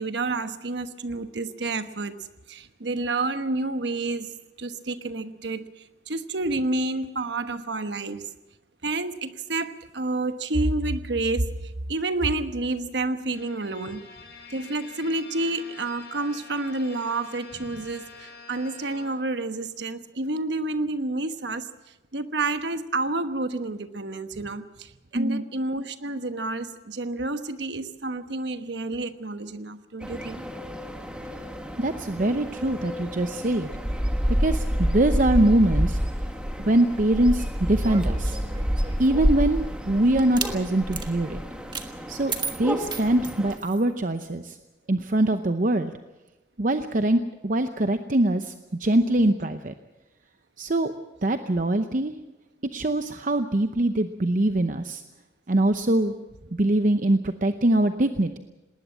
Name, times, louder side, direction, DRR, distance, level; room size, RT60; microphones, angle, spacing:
voice 1, 0.0-2.2 2.5-8.2 8.8-14.0 14.5-21.7 22.1-30.5, right 2 dB, 80° right, 10 dB, 1.2 m, -29 dB
Bowed string instrument, 13.3-19.4, left 4 dB, 75° left, 6.2 m, -47 dB
voice 2, 25.1-25.4 31.8-33.7 34.4-36.0 36.6-38.4 39.0-41.4 42.1-44.6 44.9-45.9 46.6-48.5 48.8-49.7 50.6-50.9 51.2-52.1 52.7-55.0 55.5-56.1 56.6-58.4, right 1 dB, 45° right, 8 dB, 0.8 m, -23 dB
sound 1, 30.0-43.6, equal, 5° right, 1.8 m, -29 dB
sound 2, 37.8-39.4 40.2-40.5 40.9-41.1 41.7-41.9 42.3-43.8, right 5 dB, 25° right, 1.5 m, -34 dB
19.5 x 19.0 x 7.5 m, 1.0 s
head